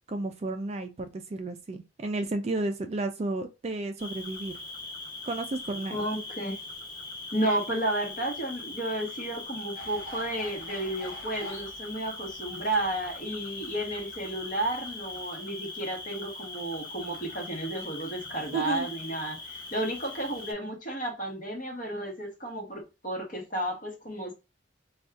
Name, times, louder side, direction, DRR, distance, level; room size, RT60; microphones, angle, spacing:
voice 1, 0.1-4.5 5.2-6.1 18.5-18.9, right 2 dB, 35° right, 0.3 m, -32 dB
Cricket, 4.0-20.5, left 2 dB, 20° left, 1.2 m, -41 dB
voice 2, 5.9-6.6 7.3-24.3, right 1 dB, 45° left, 1.1 m, -32 dB
sound 1, 9.7-15.2, left 1 dB, 80° left, 1.0 m, -48 dB
2.6 x 2.3 x 3.3 m
head